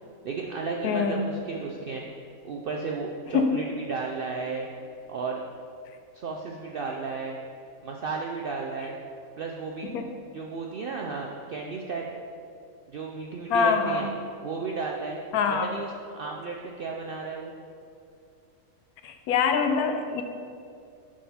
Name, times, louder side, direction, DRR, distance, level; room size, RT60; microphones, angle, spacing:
voice 1, 0.2-2.0 2.4-4.7 5.1-5.4 6.1-7.4 7.8-9.0 9.4-9.9 10.3-12.1 12.9-14.1 14.4-15.2 15.6-17.5, right 4 dB, 75° right, 0 dB, 0.5 m, -33 dB
voice 2, 0.8-1.2 3.3-3.6 9.8-10.0 13.5-14.0 15.3-15.7 19.0-20.2, left 5 dB, 90° left, 6 dB, 1.1 m, -24 dB
9.6 x 3.8 x 4.2 m, 2.4 s
omnidirectional pair, 1.5 m